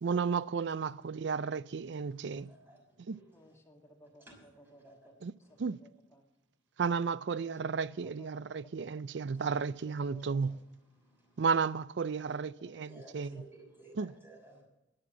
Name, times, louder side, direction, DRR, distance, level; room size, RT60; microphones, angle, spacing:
voice 1, 0.0-2.5 3.1-3.2 5.2-5.3 5.6-5.8 6.8-10.6 11.4-12.9 13.1-13.3 14.0-14.1, right 5 dB, 70° right, 0.4 m, -33 dB
voice 2, 2.3-3.5 4.2-5.1 5.4-5.6 9.3-9.6 10.4-11.5 12.8-14.6, right 2 dB, 10° right, 5.8 m, -58 dB
voice 3, 3.3-5.1 5.8-6.2 7.3-8.9 9.3-9.6 10.0-10.6 12.4-13.3, equal, 15° left, 2.2 m, -59 dB
13.5 x 11.0 x 7.3 m
head